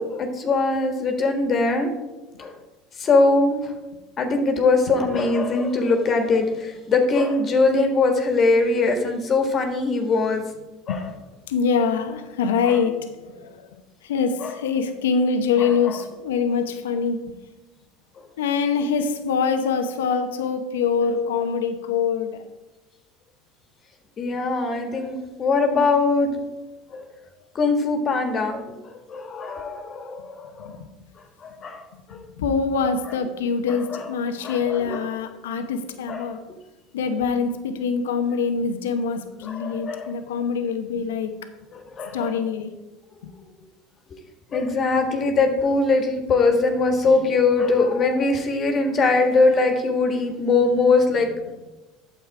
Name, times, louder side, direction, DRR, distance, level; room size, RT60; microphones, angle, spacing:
voice 1, 0.0-1.9 2.4-2.5 3.0-3.7 4.2-10.4 10.9-11.1 14.4-14.5 15.6-16.0 24.2-26.4 26.9-27.1 27.5-30.8 31.4-31.8 32.1-32.2 33.9-34.0 34.4-35.0 36.1-36.3 39.5-40.1 41.7-42.4 44.5-51.4, left 3 dB, 40° left, 5 dB, 1.7 m, -21 dB
voice 2, 11.4-17.3 18.4-22.4 30.6-30.9 32.1-36.4 36.9-41.3 42.1-42.7 43.2-43.3, left 5 dB, 85° left, 8 dB, 0.9 m, -24 dB
9.1 x 7.2 x 4.8 m, 1.1 s
hypercardioid pair, 85°, 0 cm